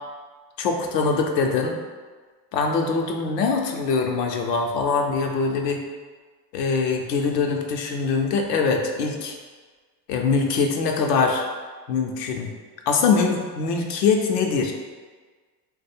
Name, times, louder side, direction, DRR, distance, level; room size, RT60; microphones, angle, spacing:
voice 1, 0.6-1.8 2.5-5.8 6.5-9.4 10.1-11.5 11.9-12.5 12.9-14.7, left 4 dB, 90° left, 2 dB, 0.7 m, -23 dB
3.1 x 2.2 x 4.2 m, 1.4 s
hypercardioid pair, 85°, 47 cm